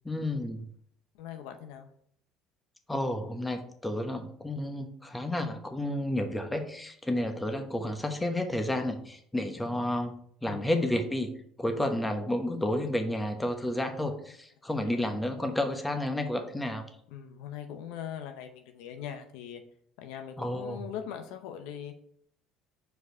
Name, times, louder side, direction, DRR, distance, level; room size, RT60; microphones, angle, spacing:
voice 1, 0.0-0.7 2.9-10.1 10.4-11.3 11.6-16.9 20.4-20.8, left 1 dB, 10° left, 6 dB, 1.1 m, -31 dB
voice 2, 1.1-1.9 7.2-7.3 10.4-10.8 14.8-15.1 17.1-19.6 20.0-22.0, left 9 dB, 75° left, 6 dB, 0.7 m, -41 dB
4.9 x 4.6 x 4.7 m, 0.65 s
hypercardioid pair, 75°, 0 cm